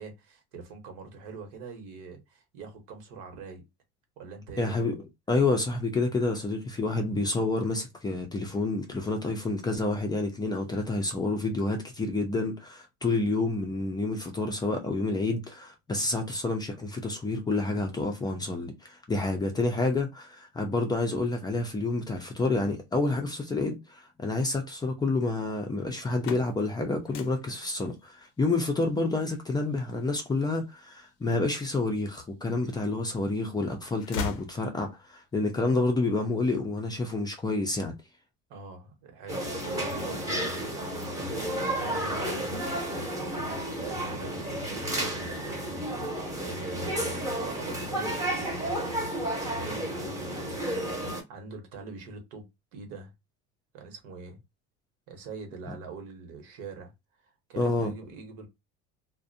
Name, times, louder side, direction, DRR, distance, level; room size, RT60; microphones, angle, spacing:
voice 1, 0.0-3.7 4.2-4.7 38.5-53.1 53.7-54.4 55.1-56.9 57.2-58.5, right 4 dB, 75° right, 1.0 m, -43 dB
voice 2, 4.6-5.0 5.3-37.9 57.6-57.9, left 2 dB, 15° left, 0.4 m, -29 dB
sound 1, 26.0-31.9 32.4-33.3 33.6-35.2, left 7 dB, 80° left, 0.5 m, -41 dB
sound 2, 39.3-51.2, right 1 dB, 10° right, 0.8 m, -32 dB
2.5 x 2.1 x 2.5 m
cardioid pair, 130°, 30 cm